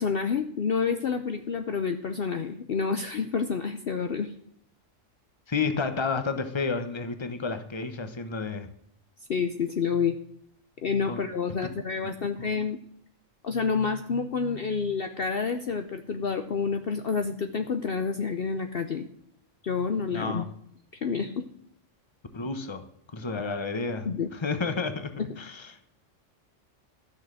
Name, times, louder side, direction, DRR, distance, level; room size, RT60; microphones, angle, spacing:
voice 1, 0.0-4.3 9.3-10.2 10.8-12.8 13.4-19.1 19.6-20.5 21.0-21.4 24.1-24.3 25.2-25.3, left 5 dB, 55° left, 7 dB, 0.9 m, -28 dB
voice 2, 5.5-8.7 11.1-11.2 11.5-11.6 12.4-12.5 20.1-20.5 22.3-22.8 23.1-24.1 24.3-25.7, left 4 dB, 25° left, 9 dB, 1.0 m, -31 dB
13.5 x 6.4 x 7.7 m, 0.71 s
omnidirectional pair, 1.3 m